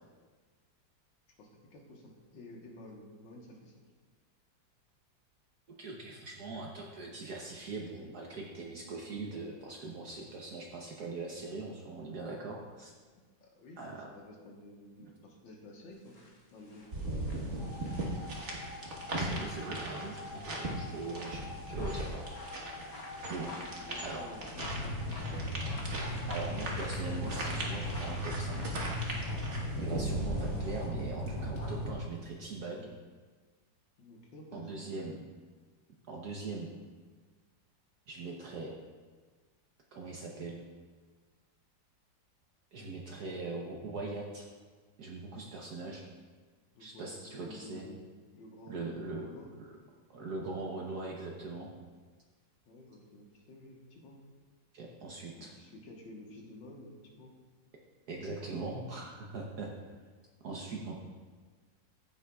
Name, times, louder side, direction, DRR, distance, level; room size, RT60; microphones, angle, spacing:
voice 1, 1.4-3.8 13.4-16.2 16.5-18.2 23.6-24.5 24.8-25.5 34.0-34.9 46.7-49.5 52.7-54.2 55.4-57.3, left 1 dB, 80° left, 0 dB, 2.0 m, -52 dB
voice 2, 5.8-12.9 13.8-14.0 15.0-15.1 19.1-22.2 23.3-23.5 24.0-24.2 26.3-28.8 29.7-32.9 34.5-35.2 36.1-36.7 38.1-38.7 39.9-40.6 42.7-44.4 45.0-46.0 46.8-47.9 48.7-49.2 50.1-51.7 54.7-55.5 58.1-59.7 60.4-61.0, right 3 dB, 60° right, -1 dB, 1.3 m, -41 dB
sound 1, 16.1-29.2, left 2 dB, 40° left, 1.3 m, -52 dB
sound 2, 16.9-30.9, right 1 dB, 40° right, 1.5 m, -39 dB
sound 3, 17.5-31.9, left 1 dB, 65° left, 2.5 m, -39 dB
14.0 x 7.3 x 2.3 m, 1.4 s
omnidirectional pair, 2.0 m